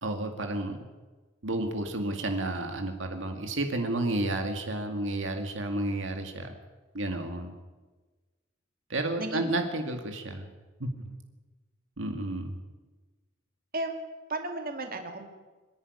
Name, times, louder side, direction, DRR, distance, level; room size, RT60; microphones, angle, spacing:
voice 1, 0.0-0.8 1.4-6.5 6.9-7.5 8.9-10.5 10.8-11.0 12.0-12.6, right 2 dB, 70° right, 5 dB, 2.2 m, -31 dB
voice 2, 14.3-15.3, right 2 dB, 50° right, 5 dB, 2.3 m, -34 dB
25.5 x 11.0 x 9.7 m, 1.3 s
head